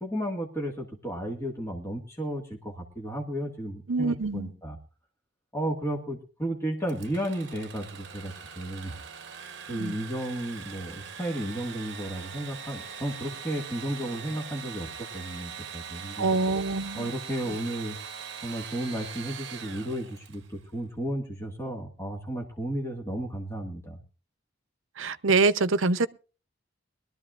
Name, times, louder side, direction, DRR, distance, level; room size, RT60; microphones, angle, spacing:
voice 1, 0.0-4.8 5.5-9.0 9.6-16.3 16.9-18.0 18.4-24.0, right 1 dB, 15° left, 1.8 m, -33 dB
voice 2, 3.9-4.5 9.7-9.9 16.2-17.1 25.0-26.1, right 3 dB, 70° right, 0.7 m, -25 dB
Engine / Sawing, 6.9-20.6, right 7 dB, 55° right, 1.0 m, -42 dB
22.0 x 13.0 x 2.5 m
head